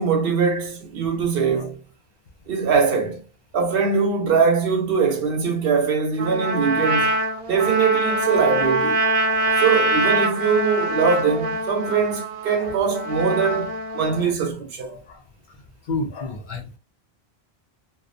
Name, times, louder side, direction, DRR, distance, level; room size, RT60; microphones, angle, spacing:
voice 1, 0.0-1.8 2.5-3.2 3.5-7.2 7.5-9.0 9.6-15.0, right 5 dB, 70° right, 0.8 m, -22 dB
Trumpet, 6.2-14.2, right 2 dB, 45° right, 0.5 m, -24 dB
voice 2, 8.1-8.7 9.1-9.6 12.6-12.8 13.9-14.3 14.9-15.2 15.9-16.8, left 3 dB, 60° left, 0.6 m, -33 dB
2.4 x 2.0 x 2.5 m
omnidirectional pair, 1.1 m